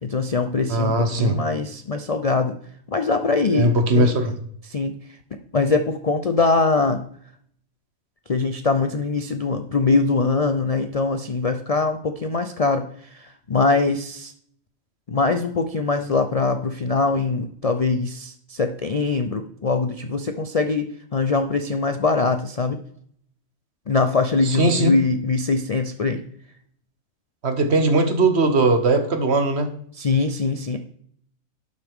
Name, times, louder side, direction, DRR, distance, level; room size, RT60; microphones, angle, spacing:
voice 1, 0.0-2.5 2.9-3.7 4.0-4.2 4.6-5.2 5.5-7.0 8.3-14.3 15.1-22.8 23.9-26.3 29.9-30.8, left 4 dB, 45° left, 7 dB, 0.5 m, -22 dB
voice 2, 0.7-1.4 3.5-4.3 24.5-24.9 27.4-29.7, right 2 dB, 55° right, 7 dB, 1.4 m, -19 dB
11.5 x 6.6 x 3.6 m, 0.64 s
omnidirectional pair, 1.4 m